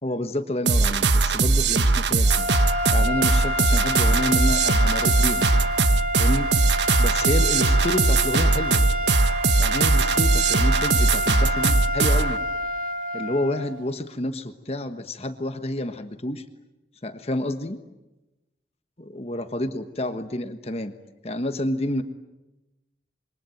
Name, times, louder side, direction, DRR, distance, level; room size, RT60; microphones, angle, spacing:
voice 1, 0.0-2.5 2.9-5.5 6.2-6.5 7.0-8.8 9.6-12.4 13.1-16.4 17.0-17.8 19.0-20.9 21.2-22.0, left 1 dB, 35° left, 8 dB, 1.3 m, -29 dB
sound 1, 0.7-12.4, right 3 dB, 80° right, 1.1 m, -20 dB
sound 2, 2.2-13.8, left 1 dB, 45° right, 2.8 m, -28 dB
27.0 x 23.5 x 9.1 m, 1.0 s
head